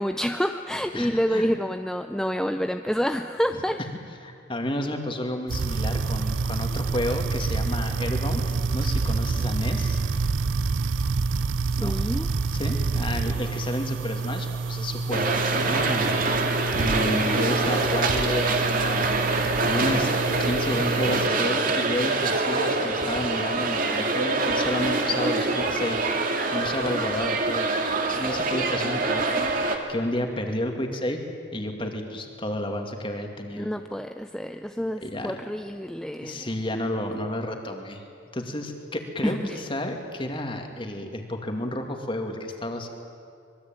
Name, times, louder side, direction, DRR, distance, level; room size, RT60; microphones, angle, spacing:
voice 1, 0.0-3.8 11.7-12.3 33.6-36.5 39.2-39.6, equal, 5° left, 6 dB, 0.6 m, -28 dB
voice 2, 0.9-1.5 3.5-3.6 4.2-10.3 11.8-12.0 12.5-15.3 15.6-16.2 16.7-20.1 20.4-26.1 26.5-27.7 28.1-31.2 31.5-33.7 35.0-35.3 36.2-38.0 38.3-42.9, left 1 dB, 25° left, 4 dB, 2.6 m, -31 dB
sound 1, 5.5-21.3, right 4 dB, 85° right, 0.6 m, -28 dB
sound 2, 15.1-29.8, right 3 dB, 45° right, 2.3 m, -25 dB
25.5 x 22.0 x 9.0 m, 2.4 s
head